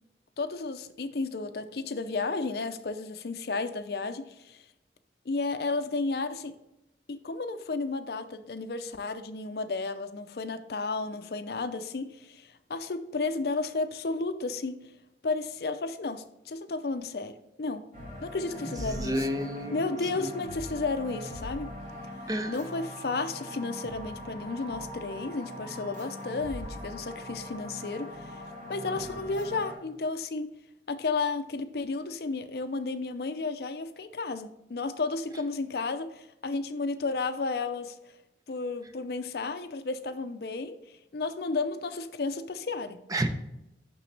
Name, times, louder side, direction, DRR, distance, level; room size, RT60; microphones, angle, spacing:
voice 1, 0.4-4.6 5.3-6.5 7.1-14.8 15.2-17.8 18.2-19.3 19.7-21.7 22.5-28.4 28.7-30.5 30.9-38.0 38.5-43.0, left 3 dB, 60° left, 10 dB, 0.5 m, -33 dB
sound 1, 17.9-29.8, left 1 dB, 45° right, 2.1 m, -41 dB
voice 2, 18.7-19.9 20.1-20.3 22.3-22.6 43.1-43.3, right 1 dB, 20° right, 7 dB, 0.6 m, -31 dB
6.8 x 6.0 x 3.3 m, 0.88 s
head